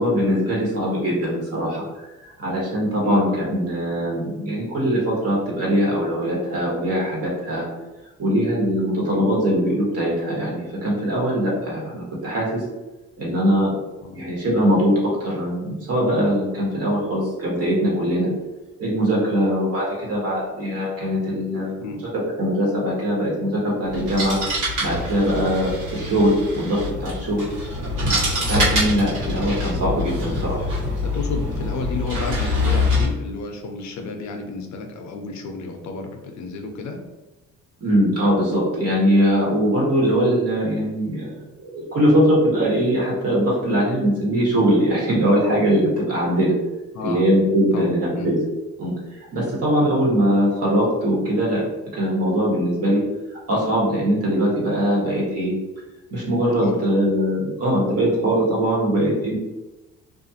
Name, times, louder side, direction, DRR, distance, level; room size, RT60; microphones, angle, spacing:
voice 1, 0.0-1.8 2.2-7.7 8.2-12.6 13.2-13.7 14.1-18.3 18.8-21.7 22.4-24.4 24.8-27.4 28.4-30.7 37.8-41.3 41.6-46.5 47.0-48.4 48.8-48.9 49.3-51.6 51.9-53.0 53.5-55.6 56.1-59.3, equal, 55° right, -4 dB, 1.3 m, -21 dB
sound 1, 23.9-33.1, left 2 dB, 80° right, 1.3 m, -25 dB
voice 2, 31.0-37.0 46.9-47.2 47.7-48.3 56.6-56.8, left 3 dB, 70° left, 4 dB, 0.5 m, -32 dB
2.5 x 2.4 x 2.7 m, 1.1 s
cardioid pair, 90°, 30 cm